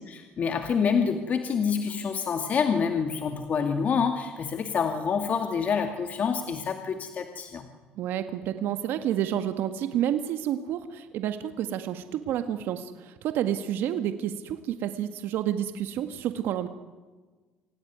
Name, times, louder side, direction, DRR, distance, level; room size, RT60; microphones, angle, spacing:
voice 1, 0.1-7.7, left 6 dB, 45° left, 6 dB, 2.3 m, -27 dB
voice 2, 8.0-16.7, right 10 dB, 70° right, 9 dB, 1.8 m, -29 dB
27.0 x 17.5 x 9.5 m, 1.3 s
cardioid pair, 105°, 4 cm